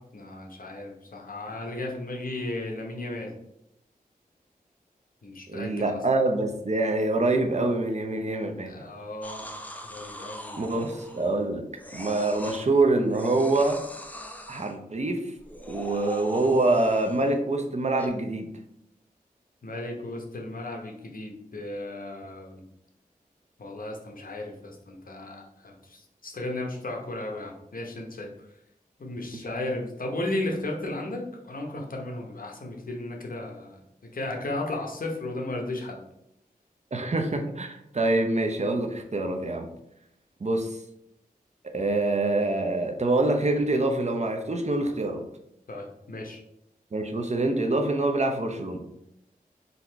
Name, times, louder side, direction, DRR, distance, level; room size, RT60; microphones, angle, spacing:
voice 1, 0.0-3.3 5.2-6.0 8.7-9.5 9.9-11.0 19.6-22.6 23.6-28.3 29.0-33.8 34.1-36.0 45.7-46.4, left 2 dB, 65° left, 1 dB, 1.0 m, -35 dB
voice 2, 5.5-8.7 10.6-11.6 11.9-13.8 14.5-15.2 15.7-18.5 36.9-39.7 40.4-40.7 41.6-45.2 46.9-48.8, right 2 dB, 50° right, 4 dB, 0.7 m, -25 dB
sound 1, 9.2-11.4 11.8-12.7 13.1-14.7 15.4-17.3 18.0-18.1, equal, 10° left, 0.6 m, -41 dB
4.0 x 2.8 x 4.5 m, 0.80 s
wide cardioid pair, 70°, 15 cm